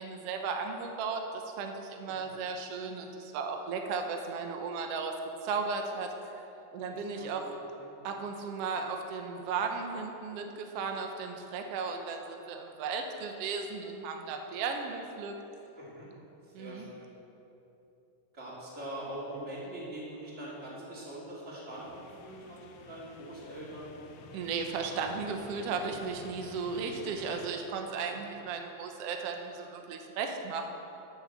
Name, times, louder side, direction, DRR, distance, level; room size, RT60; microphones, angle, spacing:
voice 1, 0.0-5.1 5.4-6.1 6.7-7.4 8.0-15.3 16.5-16.9 24.3-30.7, right 5 dB, 85° right, 4 dB, 1.3 m, -35 dB
voice 2, 15.8-16.1 16.4-17.1 18.3-23.9 28.0-28.2, right 1 dB, 20° right, -6 dB, 2.6 m, -43 dB
sound 1, 21.7-27.5, left 5 dB, 75° left, 1.8 m, -51 dB
12.0 x 6.8 x 7.4 m, 3.0 s
omnidirectional pair, 3.9 m